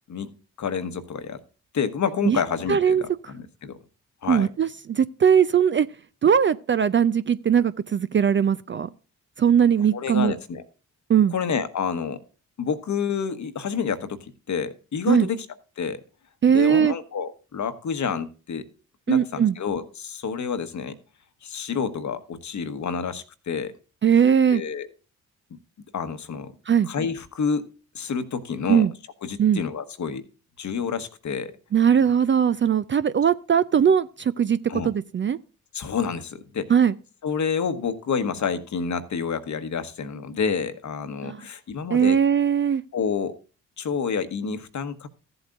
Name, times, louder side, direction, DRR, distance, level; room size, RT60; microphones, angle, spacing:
voice 1, 0.6-1.4 1.7-3.8 4.2-4.5 9.9-10.6 11.3-12.2 12.6-15.4 15.8-16.0 16.5-18.7 19.1-20.9 21.4-23.7 24.5-24.9 25.9-26.5 26.9-27.7 27.9-28.8 29.2-30.3 30.6-31.5 34.7-34.9 35.7-36.7 37.2-42.2 42.9-43.3 43.8-45.1, left 6 dB, 45° left, 1.2 m, -28 dB
voice 2, 2.7-3.0 4.3-5.9 6.2-8.9 9.4-10.3 11.1-11.3 15.1-15.3 16.4-16.9 19.1-19.5 24.0-24.6 26.7-26.9 28.7-28.9 29.4-29.6 31.7-35.4 36.7-37.0 41.2-41.4 41.9-42.8, right 8 dB, 30° right, 0.5 m, -20 dB
15.0 x 7.9 x 2.5 m
hypercardioid pair, 40°, 39 cm